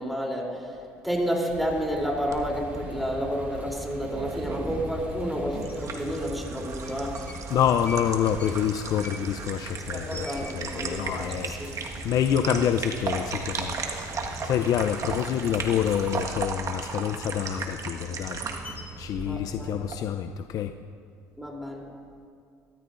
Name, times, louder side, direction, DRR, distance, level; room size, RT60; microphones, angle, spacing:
voice 1, 0.0-7.3 9.9-11.8 19.2-19.8 21.4-21.8, equal, ahead, -1 dB, 3.2 m, -30 dB
sound 1, 1.5-16.2, right 1 dB, 20° right, 3.5 m, -43 dB
sound 2, 2.3-19.9, right 4 dB, 45° right, 1.5 m, -36 dB
sound 3, 5.6-5.8 6.7-7.5 7.8-11.0 11.3-11.4 11.7-12.2 12.6-12.7 13.1-13.8 14.1-16.5 16.9-19.1, left 1 dB, 20° left, 1.6 m, -46 dB
voice 2, 7.5-13.8 14.1-18.4 19.0-20.7, left 9 dB, 55° left, 8 dB, 0.5 m, -27 dB
23.0 x 13.5 x 2.6 m, 2.3 s
supercardioid pair, 80°, 7 cm